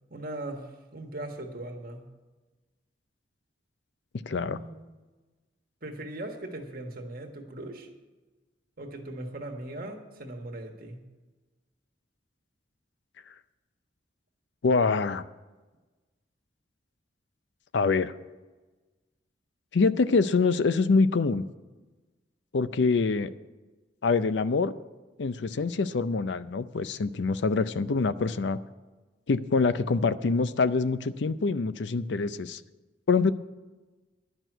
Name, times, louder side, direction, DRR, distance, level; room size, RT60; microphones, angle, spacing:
voice 1, 0.1-2.1 4.3-4.9 5.8-7.9 8.8-11.0, right 1 dB, 55° right, 3 dB, 1.6 m, -39 dB
voice 2, 4.3-4.6 14.6-15.2 17.7-18.1 19.7-21.4 22.5-23.3 24.0-24.8 25.2-28.6 29.3-32.6 33.1-33.3, left 4 dB, 75° left, 14 dB, 0.5 m, -25 dB
11.0 x 6.1 x 9.1 m, 1.2 s
head